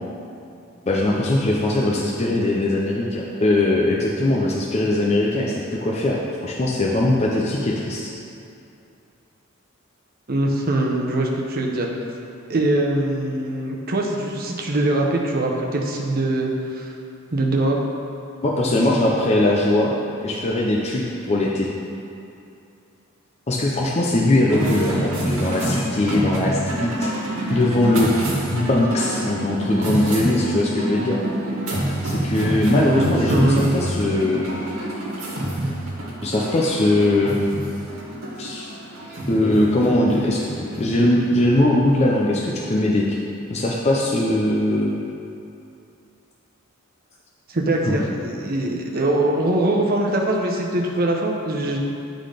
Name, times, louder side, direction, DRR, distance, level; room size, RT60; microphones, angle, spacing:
voice 1, 0.9-8.1 18.4-19.9 20.2-21.7 23.5-28.1 28.5-31.2 32.0-34.5 36.2-37.4 38.4-38.7 39.3-43.2 43.5-44.9 47.8-48.0, left 1 dB, 30° left, -4 dB, 0.6 m, -20 dB
voice 2, 10.3-11.9 12.5-16.9 17.3-17.8 32.8-33.7 47.5-51.8, right 1 dB, 45° right, 0 dB, 0.8 m, -22 dB
sound 1, 24.5-43.1, right 1 dB, 85° right, 1.4 m, -27 dB
8.5 x 3.9 x 5.0 m, 2.7 s
head